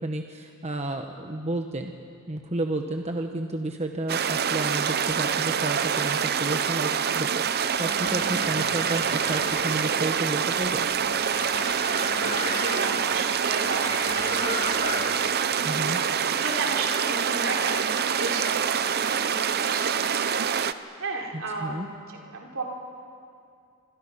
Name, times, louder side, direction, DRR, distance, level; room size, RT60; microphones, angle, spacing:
voice 1, 0.0-1.9 2.3-10.9 15.6-16.0 21.3-21.9, right 2 dB, 30° right, 4 dB, 1.1 m, -31 dB
sound 1, 4.1-20.7, right 7 dB, 50° right, 0.7 m, -26 dB
sound 2, 7.5-15.3, left 2 dB, 30° left, 3.5 m, -35 dB
voice 2, 8.9-9.2 12.5-15.1 15.4-20.3 20.9-22.6, right 3 dB, 65° right, 0 dB, 3.9 m, -35 dB
27.0 x 26.0 x 5.8 m, 2.5 s
head